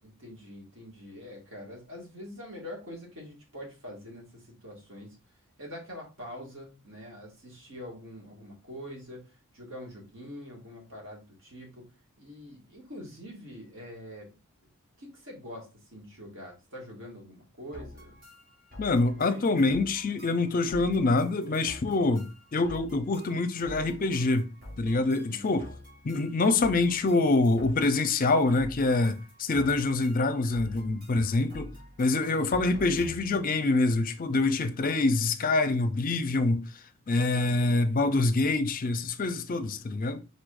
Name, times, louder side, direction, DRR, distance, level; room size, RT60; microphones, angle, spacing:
voice 1, 0.0-5.2 5.6-11.9 12.2-14.3 15.0-18.2 19.1-19.5 25.2-25.6 32.4-32.7 37.3-38.0, equal, 60° right, 2.0 m, -45 dB
sound 1, 17.7-33.5, left 1 dB, 40° right, 1.9 m, -47 dB
voice 2, 18.8-24.5 24.8-25.7 26.0-31.7 32.0-36.6 37.1-40.2, left 3 dB, 40° left, 0.5 m, -25 dB
4.8 x 4.1 x 2.5 m
head